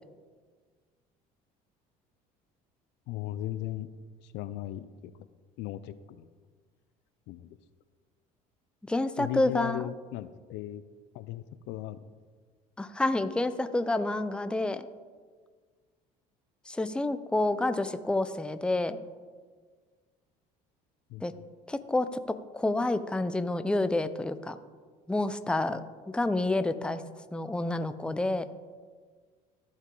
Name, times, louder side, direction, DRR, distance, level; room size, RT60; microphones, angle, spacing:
voice 1, 3.1-3.9 4.2-5.1 5.6-6.3 7.3-7.6 9.2-10.8 11.1-12.0 21.1-21.2, left 13 dB, 70° left, 14 dB, 0.5 m, -37 dB
voice 2, 8.9-9.8 12.8-14.9 16.7-19.0 21.2-21.3 21.7-24.6 25.1-25.8 26.1-27.0 27.3-28.5, left 2 dB, 5° left, 11 dB, 0.5 m, -29 dB
15.0 x 5.3 x 3.8 m, 1.5 s
hypercardioid pair, 75°, 19 cm